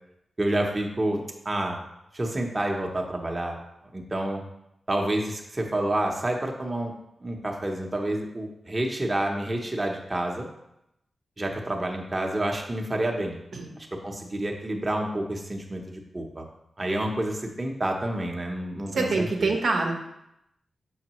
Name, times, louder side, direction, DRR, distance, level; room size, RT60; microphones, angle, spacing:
voice 1, 0.4-1.2 1.4-1.8 2.1-3.6 3.9-4.4 4.9-6.9 7.2-10.5 11.4-13.4 14.0-16.4 16.8-19.5, right 1 dB, 25° right, 1 dB, 0.9 m, -29 dB
voice 2, 18.9-19.9, right 3 dB, 75° right, 1 dB, 0.9 m, -25 dB
6.4 x 5.2 x 3.0 m, 0.82 s
wide cardioid pair, 90°, 0 cm